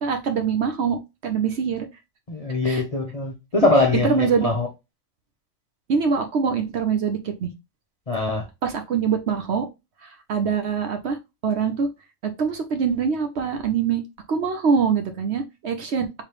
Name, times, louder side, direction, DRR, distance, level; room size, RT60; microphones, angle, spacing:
voice 1, 0.0-1.9 2.6-2.8 3.9-4.5 5.9-7.5 8.6-9.7 10.0-11.2 11.4-11.9 12.2-14.0 14.3-16.2, right 6 dB, 60° right, 0.9 m, -24 dB
voice 2, 2.3-4.7 8.1-8.4, left 2 dB, 35° left, 0.7 m, -22 dB
4.7 x 3.3 x 3.0 m
omnidirectional pair, 1.4 m